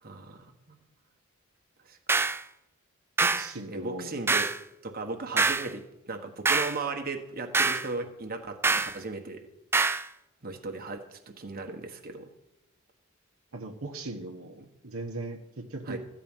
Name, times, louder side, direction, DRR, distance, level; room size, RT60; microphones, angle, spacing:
voice 1, 0.0-0.8 1.8-2.0 3.7-4.5 4.8-9.5 10.4-12.3 15.9-16.0, right 3 dB, 45° right, 5 dB, 1.4 m, -37 dB
sound 1, 2.1-2.4 3.2-3.5 4.3-4.6 5.4-5.7 6.4-6.8 7.5-7.9 8.6-8.9 9.7-10.0, right 3 dB, 10° right, 0.3 m, -25 dB
voice 2, 3.2-4.2 13.5-16.0, right 2 dB, 80° right, 2 dB, 1.2 m, -38 dB
14.5 x 4.9 x 9.0 m, 0.96 s
head